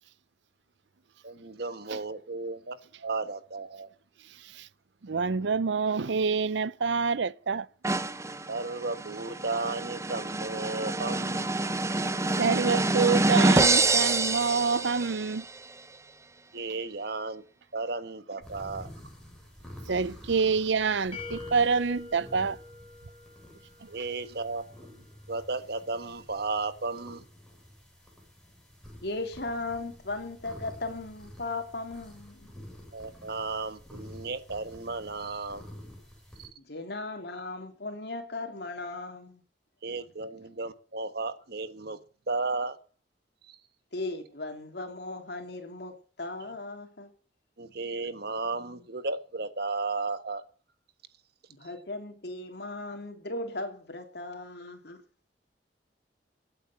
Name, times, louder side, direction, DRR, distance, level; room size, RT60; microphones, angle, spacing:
voice 1, 1.2-3.9 8.5-11.5 16.5-17.4 17.7-18.9 23.9-24.8 25.3-27.2 32.9-35.6 36.4-36.5 39.8-42.0 42.3-42.8 43.5-43.6 47.6-50.4, right 3 dB, 60° right, 1.4 m, -34 dB
voice 2, 5.0-7.7 12.4-15.5 19.9-22.6, right 5 dB, 85° right, 0.6 m, -27 dB
sound 1, 7.8-15.4, right 2 dB, 15° right, 0.7 m, -27 dB
sound 2, 18.4-36.5, equal, 5° left, 7.8 m, -49 dB
sound 3, 21.1-24.0, left 3 dB, 35° left, 6.8 m, -44 dB
voice 3, 29.0-32.5 36.7-39.4 43.9-47.1 51.6-55.0, left 2 dB, 65° left, 3.1 m, -37 dB
16.5 x 8.9 x 7.2 m
head